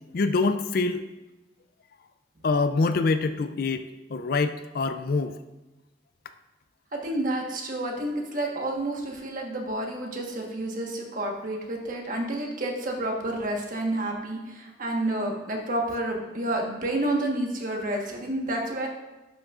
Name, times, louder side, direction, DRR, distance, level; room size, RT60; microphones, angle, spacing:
voice 1, 0.1-1.0 2.4-5.4, left 3 dB, 50° left, 10 dB, 0.4 m, -25 dB
voice 2, 6.9-18.9, right 1 dB, 45° right, 1 dB, 1.3 m, -29 dB
11.0 x 6.2 x 2.5 m, 1.1 s
head